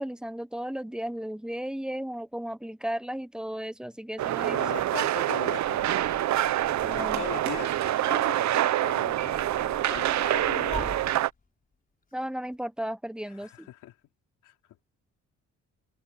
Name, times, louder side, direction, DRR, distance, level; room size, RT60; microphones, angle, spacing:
voice 1, 0.0-4.6 6.8-7.2 12.1-13.7, equal, 5° right, 1.3 m, -35 dB
sound 1, 4.2-11.3, right 13 dB, 65° right, 0.8 m, -26 dB
Truck / Door, 4.3-7.8 8.9-11.4 12.1-12.2 12.4-12.5, left 4 dB, 30° left, 4.7 m, -45 dB
voice 2, 4.5-6.4 6.9-9.4 9.8-11.0 13.3-14.0 14.4-14.8, left 13 dB, 85° left, 4.6 m, -40 dB
cardioid pair, 90°, 30 cm